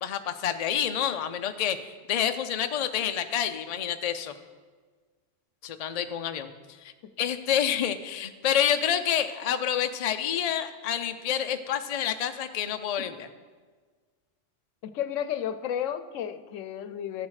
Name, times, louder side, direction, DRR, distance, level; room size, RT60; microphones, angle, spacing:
voice 1, 0.0-4.3 5.6-6.5 6.8-6.9 7.2-13.3, left 9 dB, 50° left, 8 dB, 0.5 m, -28 dB
voice 2, 14.8-17.3, left 9 dB, 85° left, 11 dB, 1.0 m, -32 dB
13.5 x 7.3 x 4.8 m, 1.5 s
omnidirectional pair, 1.3 m